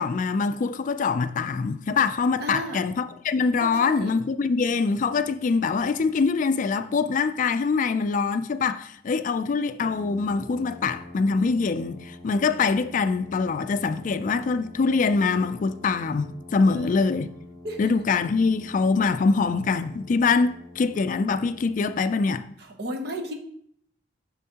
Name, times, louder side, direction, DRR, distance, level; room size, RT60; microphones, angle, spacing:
voice 1, 0.0-17.3 17.8-22.4, left 4 dB, 45° left, 0.3 m, -24 dB
voice 2, 2.4-2.8 3.6-4.1 16.7-17.0 17.6-17.8 22.8-23.3, equal, 60° right, 1.0 m, -33 dB
Brass instrument, 9.8-22.0, left 1 dB, 25° right, 2.9 m, -45 dB
7.0 x 6.2 x 2.9 m
head